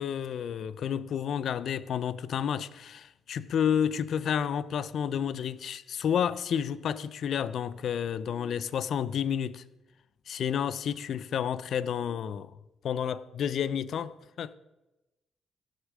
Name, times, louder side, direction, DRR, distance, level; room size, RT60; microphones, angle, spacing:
voice 1, 0.0-9.6 10.3-12.5 12.8-14.5, left 8 dB, 65° left, 0.5 m, -30 dB
16.5 x 6.6 x 6.2 m
cardioid pair, 90°, 0 cm